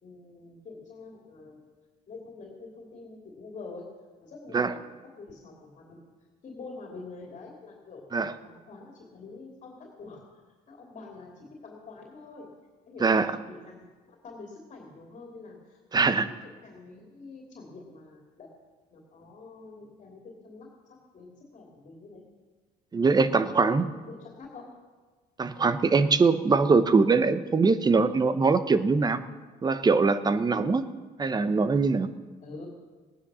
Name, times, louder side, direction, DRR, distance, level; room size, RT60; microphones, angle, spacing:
voice 1, 0.0-1.7 2.1-3.8 4.2-6.0 6.4-8.0 8.4-12.5 12.9-15.8 16.4-18.5 18.9-22.2 23.1-24.7 32.4-32.7, left 3 dB, 45° left, -1 dB, 2.9 m, -46 dB
voice 2, 13.0-13.3 15.9-16.3 22.9-23.9 25.4-29.2 29.6-30.9 31.2-32.1, right 4 dB, 25° right, 12 dB, 0.9 m, -22 dB
18.0 x 9.8 x 6.3 m, 1.4 s
cardioid pair, 110°, 17 cm